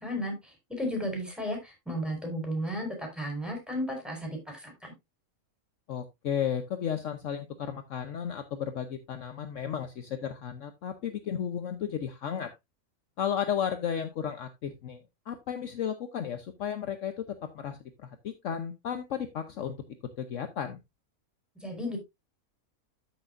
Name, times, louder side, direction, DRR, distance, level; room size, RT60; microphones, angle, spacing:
voice 1, 0.0-4.9 21.6-22.0, equal, ahead, 2 dB, 4.4 m, -34 dB
voice 2, 5.9-12.5 13.2-15.0 15.3-19.8 20.2-20.8, left 8 dB, 60° left, 8 dB, 1.1 m, -34 dB
13.5 x 6.1 x 2.5 m, 0.20 s
omnidirectional pair, 1.5 m